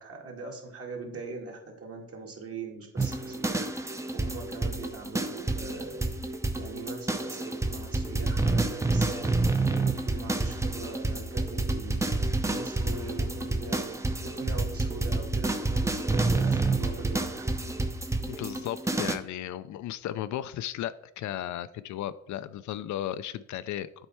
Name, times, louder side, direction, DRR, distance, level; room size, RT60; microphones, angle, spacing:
voice 1, 0.0-17.4, right 4 dB, 50° right, 0 dB, 2.1 m, -42 dB
sound 1, 3.0-19.2, right 2 dB, 10° right, 0.6 m, -29 dB
voice 2, 18.3-23.9, left 12 dB, 75° left, 14 dB, 0.5 m, -35 dB
8.0 x 4.3 x 4.3 m, 0.75 s
cardioid pair, 90°, 30 cm